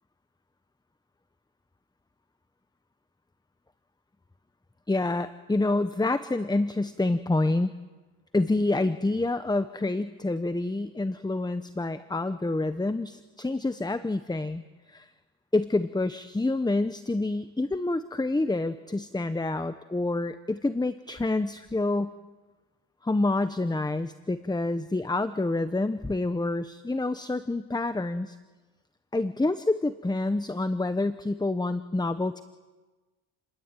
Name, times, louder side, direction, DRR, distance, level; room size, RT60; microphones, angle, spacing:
voice 1, 4.9-7.7 8.3-14.6 14.9-15.1 15.5-22.1 23.0-28.4 29.1-32.4, left 2 dB, 10° left, 12 dB, 1.0 m, -27 dB
29.5 x 21.5 x 9.3 m, 1.2 s
cardioid pair, 100°, 47 cm